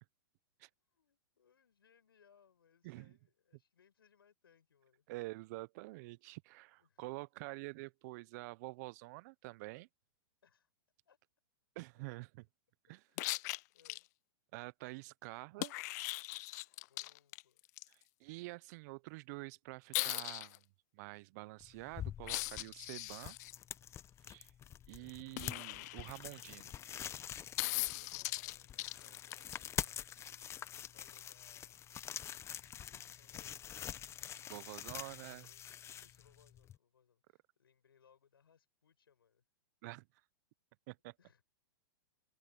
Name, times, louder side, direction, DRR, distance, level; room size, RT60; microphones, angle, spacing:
voice 1, 0.9-5.1 6.8-7.0 10.4-10.7 11.1-11.2 12.0-12.1 13.1-13.4 13.7-14.1 16.8-17.6 24.9-25.5 27.9-30.0 30.6-31.8 32.9-34.1 35.0-39.4 41.2-41.4, left 7 dB, 80° left, 7.5 m, -70 dB
voice 2, 5.1-9.9 11.7-12.5 12.9-13.0 14.5-15.7 17.9-20.6 20.9-23.4 24.3-24.5 24.9-26.7 34.5-35.5 39.8-40.1 40.9-41.1, right 23 dB, 50° right, 0.8 m, -47 dB
sound 1, 13.2-14.0 15.6-17.8 19.9-20.6 22.2-23.5 25.4-26.5 27.6-29.6 31.5-31.6, left 22 dB, 50° left, 0.4 m, -39 dB
sound 2, 21.6-36.8, left 10 dB, 25° left, 1.2 m, -46 dB
hypercardioid pair, 120°, 12 cm